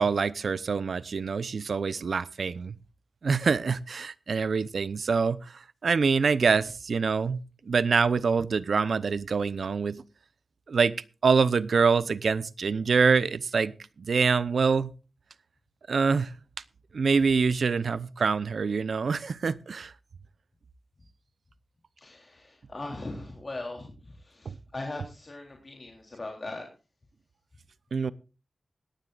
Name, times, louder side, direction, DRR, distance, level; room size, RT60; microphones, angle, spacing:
voice 1, 0.0-2.8 3.2-5.4 5.8-10.0 10.7-10.9 11.2-14.9 15.9-16.3 16.9-19.9 24.5-24.6 27.9-28.1, right 5 dB, 85° right, 0.7 m, -25 dB
voice 2, 22.0-26.7, left 2 dB, 40° left, 3.2 m, -39 dB
19.0 x 15.0 x 2.5 m
wide cardioid pair, 105°, 0 cm